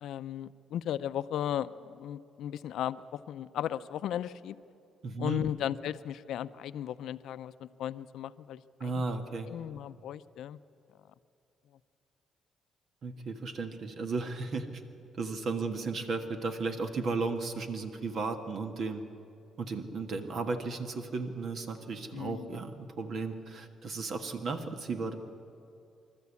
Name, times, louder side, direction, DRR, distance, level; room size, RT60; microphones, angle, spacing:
voice 1, 0.0-4.6 5.2-9.0 9.5-10.6 22.1-22.6, left 11 dB, 80° left, 14 dB, 0.6 m, -36 dB
voice 2, 5.0-5.4 8.8-9.5 13.0-14.7 15.1-19.0 19.6-25.2, right 3 dB, 60° right, 6 dB, 1.5 m, -34 dB
26.0 x 13.0 x 8.4 m, 2.7 s
cardioid pair, 90°, 0 cm